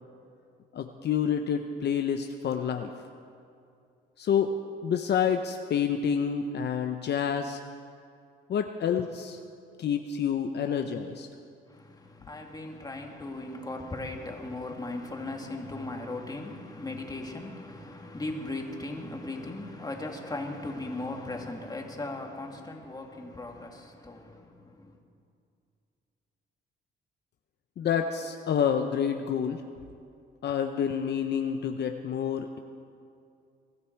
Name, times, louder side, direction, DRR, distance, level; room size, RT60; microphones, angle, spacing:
voice 1, 0.7-2.9 4.2-4.5 4.8-7.6 8.5-9.4 9.8-11.3 27.8-29.6 30.4-32.6, left 7 dB, 60° left, 5 dB, 0.8 m, -28 dB
voice 2, 11.7-25.0, left 2 dB, 20° left, 2 dB, 2.2 m, -38 dB
22.0 x 14.0 x 4.6 m, 2.4 s
cardioid pair, 90°, 20 cm